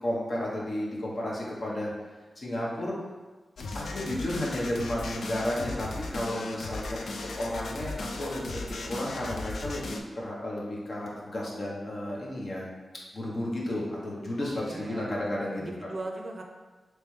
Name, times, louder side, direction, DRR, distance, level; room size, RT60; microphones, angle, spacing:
voice 1, 0.0-1.9 2.4-3.0 3.7-12.7 13.1-15.6, left 1 dB, 55° left, -4 dB, 0.9 m, -33 dB
sound 1, 3.6-10.0, left 3 dB, 85° left, 0.3 m, -37 dB
voice 2, 14.4-15.2 15.6-16.4, right 2 dB, 45° right, 2 dB, 0.4 m, -39 dB
3.3 x 3.0 x 3.1 m, 1.3 s
wide cardioid pair, 75°, 0 cm